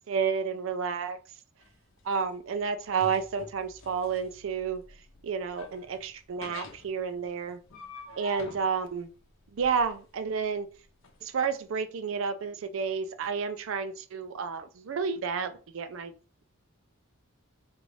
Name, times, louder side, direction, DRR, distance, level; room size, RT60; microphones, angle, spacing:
voice 1, 0.1-1.2 2.0-4.8 5.2-7.6 8.2-9.1 9.5-10.7 11.2-16.1, right 6 dB, 65° right, 10 dB, 0.4 m, -31 dB
sound 1, 1.6-11.2, left 1 dB, 65° left, 0.7 m, -48 dB
3.7 x 2.4 x 3.2 m, 0.35 s
head